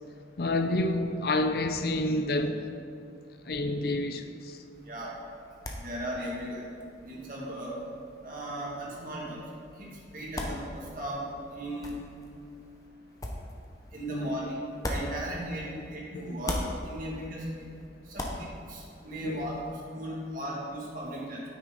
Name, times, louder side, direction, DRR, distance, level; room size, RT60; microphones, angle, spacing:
voice 1, 0.4-2.8 3.5-4.6 14.1-14.3 16.1-16.2 17.1-17.2 19.2-19.4, left 2 dB, 55° left, 0.5 m, -29 dB
sound 1, 4.7-15.9 16.2-19.6, left 1 dB, 20° left, 0.9 m, -41 dB
voice 2, 4.9-5.2 5.8-6.7 7.1-7.8 8.2-9.4 9.8-12.0 13.9-17.5 18.1-21.4, right 1 dB, 50° right, 2.3 m, -37 dB
9.2 x 8.9 x 4.0 m
head